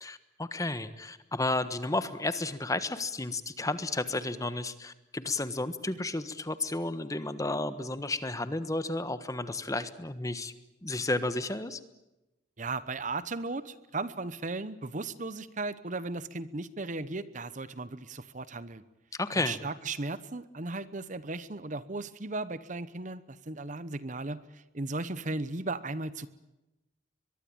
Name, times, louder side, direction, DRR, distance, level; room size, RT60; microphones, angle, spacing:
voice 1, 0.0-10.5 10.8-11.8 19.2-19.6, left 2 dB, 15° left, 12 dB, 1.3 m, -32 dB
voice 2, 12.6-18.8 19.3-26.3, right 3 dB, 40° right, 15 dB, 1.0 m, -36 dB
23.5 x 22.5 x 8.9 m, 0.96 s
head